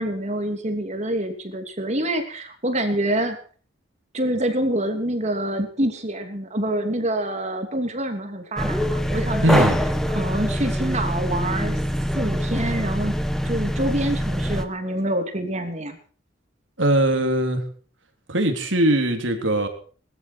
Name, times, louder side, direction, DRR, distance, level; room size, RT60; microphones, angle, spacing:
voice 1, 0.0-3.4 4.1-9.7 10.1-11.8 12.1-13.1 13.4-16.0, right 1 dB, 35° right, 5 dB, 2.9 m, -26 dB
sound 1, 8.6-14.7, equal, ahead, 1.5 m, -24 dB
voice 2, 9.4-9.8 16.8-17.6 18.3-19.7, right 1 dB, 80° right, 5 dB, 3.7 m, -20 dB
21.5 x 13.0 x 4.6 m, 0.43 s
head